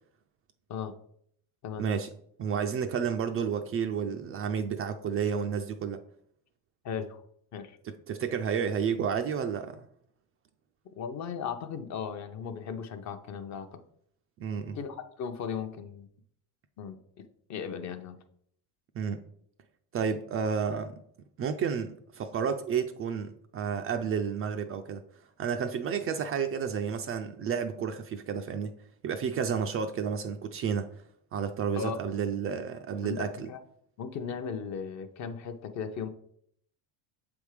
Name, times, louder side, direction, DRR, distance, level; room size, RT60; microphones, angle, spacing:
voice 1, 1.8-2.1 2.4-6.0 7.8-9.8 14.4-14.8 19.0-19.2 19.9-21.0 21.4-25.0 25.4-28.8 29.0-30.9 31.3-33.5, right 7 dB, 35° right, 0.4 m, -31 dB
voice 2, 6.8-7.2 7.5-7.8 11.0-13.8 14.7-16.1 16.8-18.2 31.7-32.0 33.0-33.6 34.0-36.1, left 6 dB, 40° left, 0.7 m, -37 dB
7.2 x 3.5 x 4.8 m
cardioid pair, 125°, 42 cm